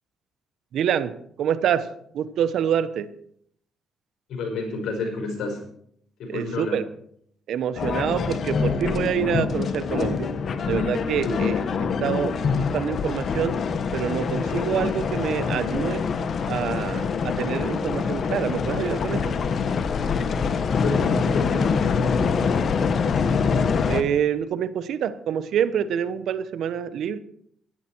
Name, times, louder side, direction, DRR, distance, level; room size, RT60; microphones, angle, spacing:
voice 1, 0.7-1.1 1.4-1.9 2.1-3.1 6.3-6.8 7.5-10.3 10.7-13.6 13.9-16.0 16.5-19.3 23.9-27.2, right 9 dB, 75° right, 13 dB, 0.9 m, -26 dB
voice 2, 4.3-5.6 6.2-6.8 11.2-11.4 20.8-22.3, left 3 dB, 70° left, 3 dB, 4.9 m, -29 dB
sound 1, 7.7-24.0, left 5 dB, 55° left, 1.1 m, -25 dB
16.0 x 11.0 x 4.5 m, 0.68 s
cardioid pair, 90°, 0 cm